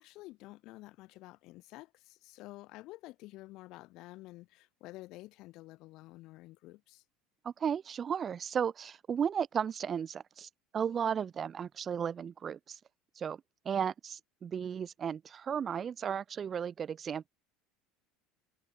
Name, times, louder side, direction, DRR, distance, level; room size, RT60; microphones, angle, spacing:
voice 1, 0.0-7.0, left 19 dB, 60° left, 5.4 m, -50 dB
voice 2, 7.4-12.8 13.2-13.4 13.6-17.3, right 7 dB, 35° right, 0.7 m, -34 dB
hypercardioid pair, 70°, 0 cm